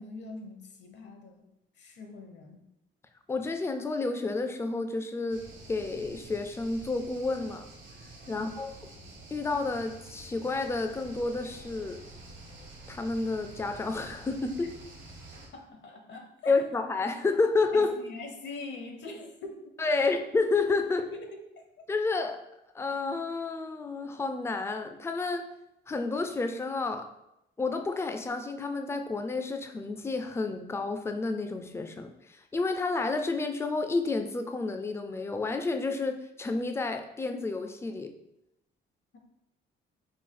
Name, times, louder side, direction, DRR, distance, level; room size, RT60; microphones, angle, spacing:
voice 1, 0.0-1.5 1.8-2.6 8.3-8.6 15.5-16.5 17.7-19.6 20.0-20.1 21.1-21.4 39.1-39.2, left 3 dB, 65° left, 3 dB, 0.9 m, -43 dB
voice 2, 3.3-7.7 8.3-8.7 9.3-12.0 12.9-14.8 16.5-17.9 19.8-21.0 21.9-22.4 22.7-25.5 25.9-27.1 27.6-38.1, left 3 dB, 15° left, 7 dB, 0.4 m, -30 dB
sound 1, 5.3-15.5, right 1 dB, 75° right, 1.2 m, -48 dB
4.2 x 2.3 x 3.8 m, 0.85 s
cardioid pair, 90°, 20 cm